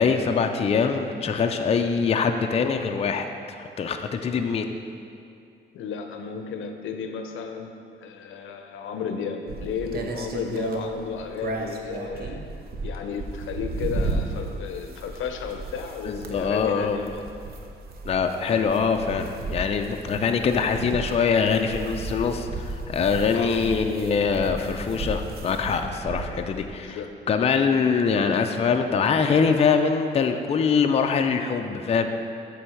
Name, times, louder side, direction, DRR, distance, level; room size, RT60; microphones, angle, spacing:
voice 1, 0.0-4.7 16.0-17.0 18.0-27.0 27.3-32.1, left 5 dB, 30° left, 5 dB, 0.4 m, -23 dB
voice 2, 5.7-7.7 8.0-12.4 12.8-17.1 23.3-23.6 25.8-26.0 26.7-27.1, left 6 dB, 80° left, 5 dB, 0.6 m, -33 dB
sound 1, 9.5-26.7, right 2 dB, 50° right, 0.7 m, -34 dB
7.7 x 3.4 x 5.7 m, 2.5 s
cardioid pair, 90°, 20 cm